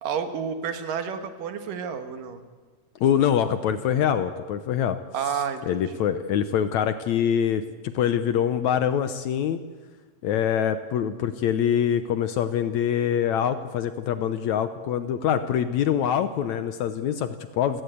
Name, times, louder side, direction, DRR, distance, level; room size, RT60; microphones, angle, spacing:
voice 1, 0.0-2.4 5.1-6.0, right 7 dB, 75° right, 8 dB, 3.1 m, -30 dB
voice 2, 3.0-5.0 5.7-9.6 10.2-17.8, left 9 dB, 70° left, 11 dB, 1.9 m, -24 dB
29.5 x 17.0 x 8.3 m, 1.4 s
omnidirectional pair, 3.9 m